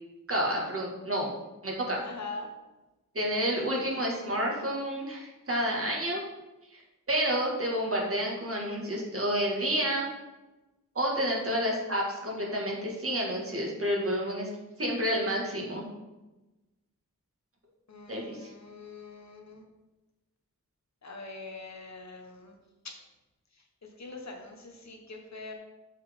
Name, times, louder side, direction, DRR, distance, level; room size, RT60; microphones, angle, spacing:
voice 1, 0.3-1.3 1.6-2.0 3.1-6.2 6.7-6.8 7.1-10.1 11.0-14.5 14.8-15.8 18.1-18.5, equal, 40° right, -2 dB, 2.0 m, -29 dB
voice 2, 2.0-2.5 3.5-3.7 17.9-19.6 21.0-22.6 22.8-22.9 23.8-25.5, left 3 dB, 55° left, 2 dB, 1.3 m, -43 dB
7.7 x 5.8 x 3.7 m, 1.1 s
wide cardioid pair, 85°, 33 cm